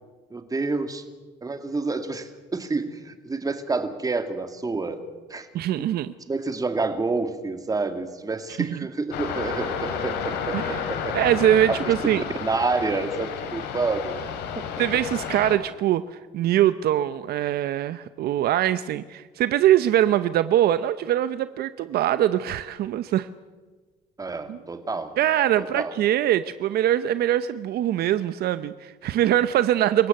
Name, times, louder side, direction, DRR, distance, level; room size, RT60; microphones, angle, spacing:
voice 1, 0.3-1.0 1.4-5.0 5.3-5.5 5.8-5.9 6.3-11.2 11.7-11.9 12.4-14.2 14.6-14.7 14.9-15.0 24.2-25.2 25.5-25.9, right 3 dB, 20° right, 8 dB, 2.2 m, -28 dB
voice 2, 5.5-6.1 10.5-10.8 11.1-12.2 14.8-16.0 16.3-23.3 24.5-24.6 25.2-30.1, right 12 dB, 70° right, 13 dB, 0.8 m, -22 dB
sound 1, 9.1-15.6, left 7 dB, 85° left, 2.7 m, -31 dB
27.0 x 16.0 x 7.9 m, 1.4 s
cardioid pair, 110°, 17 cm